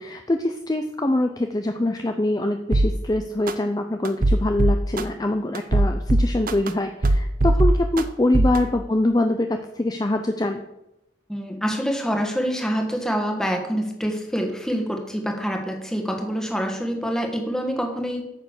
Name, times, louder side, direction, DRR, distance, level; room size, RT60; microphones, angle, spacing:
voice 1, 0.0-10.6, left 1 dB, 20° left, 6 dB, 0.5 m, -24 dB
sound 1, 2.7-2.9 3.5-3.6 4.1-5.0 5.6-6.7 7.0-8.0 8.3-8.6, right 1 dB, 50° right, 0.7 m, -18 dB
voice 2, 11.3-18.2, equal, 5° left, 2 dB, 1.5 m, -26 dB
9.1 x 6.3 x 6.6 m, 0.88 s
head